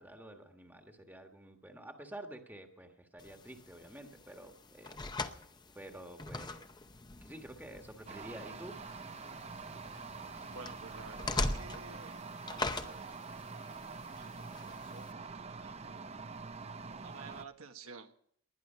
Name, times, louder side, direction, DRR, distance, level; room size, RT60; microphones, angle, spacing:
voice 1, 0.0-5.0 5.3-5.4 5.7-6.7 7.2-8.8, right 1 dB, 10° right, 4 dB, 1.4 m, -49 dB
sound 1, 3.2-15.1, left 2 dB, 20° left, 0.7 m, -42 dB
sound 2, 8.1-17.4, right 4 dB, 30° right, 0.6 m, -45 dB
voice 2, 10.5-12.2 12.5-14.5 14.8-16.1 16.8-18.1, right 4 dB, 80° right, 5 dB, 1.5 m, -52 dB
20.0 x 11.0 x 5.7 m, 0.64 s
head